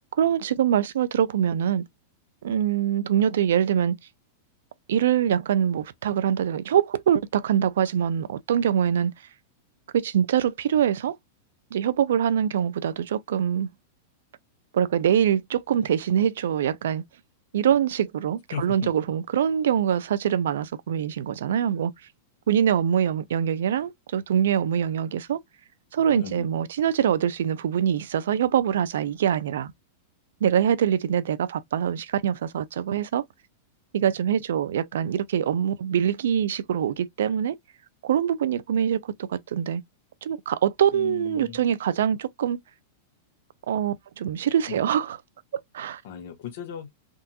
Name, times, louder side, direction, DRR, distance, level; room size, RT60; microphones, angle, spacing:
voice 1, 0.2-1.8 2.4-3.9 4.9-9.1 9.9-11.2 11.7-13.7 14.7-17.0 17.5-21.9 22.5-25.4 25.9-29.7 30.4-33.2 33.9-37.5 38.0-39.8 40.2-42.6 43.7-45.2 45.7-46.0, right 9 dB, 80° right, 0.4 m, -24 dB
voice 2, 18.5-18.9 26.1-26.5 40.9-41.6 44.7-44.8 46.0-46.9, left 8 dB, 65° left, 1.2 m, -36 dB
3.6 x 2.7 x 2.2 m
hypercardioid pair, 130°, 0 cm